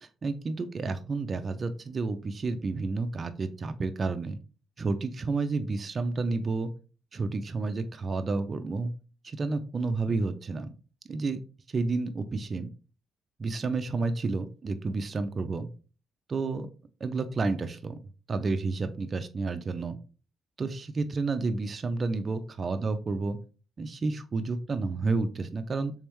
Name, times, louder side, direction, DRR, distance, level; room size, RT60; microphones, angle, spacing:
voice 1, 0.2-4.4 4.8-6.7 7.1-8.9 9.2-10.7 11.1-11.4 11.7-12.7 13.4-15.7 16.3-16.7 17.0-17.9 18.3-20.0 20.6-23.4 23.8-25.9, right 3 dB, 40° right, 8 dB, 0.5 m, -30 dB
3.5 x 3.4 x 3.0 m, 0.35 s
cardioid pair, 90°, 0 cm